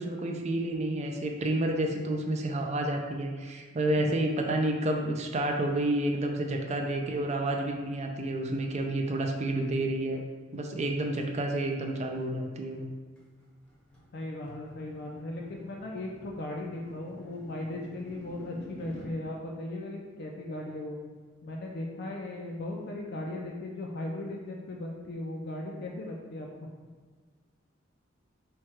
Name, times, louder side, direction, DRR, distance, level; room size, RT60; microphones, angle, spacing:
voice 1, 0.0-10.2 10.5-12.9, right 1 dB, 35° right, 2 dB, 0.4 m, -30 dB
sound 1, 13.2-19.2, right 1 dB, 5° left, 0.8 m, -50 dB
voice 2, 14.1-21.0 21.4-26.7, left 1 dB, 55° left, -1 dB, 0.5 m, -37 dB
4.6 x 2.3 x 4.4 m, 1.5 s
head